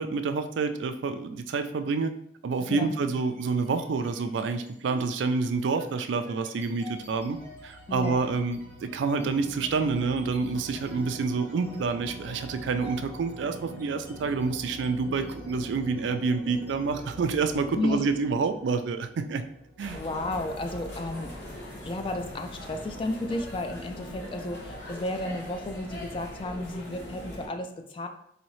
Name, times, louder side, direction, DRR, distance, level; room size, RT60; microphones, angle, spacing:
voice 1, 0.0-2.1 2.4-19.4 19.8-20.0, right 4 dB, 80° right, 9 dB, 0.4 m, -28 dB
voice 2, 2.7-3.0 7.9-8.2 17.8-18.0 19.9-21.3 21.8-28.1, left 2 dB, 30° left, 6 dB, 0.3 m, -33 dB
sound 1, 3.1-3.6 4.0-20.6, right 1 dB, 15° left, 1.1 m, -45 dB
sound 2, 19.8-27.5, equal, 80° left, 1.1 m, -41 dB
4.1 x 2.7 x 3.1 m, 0.72 s
head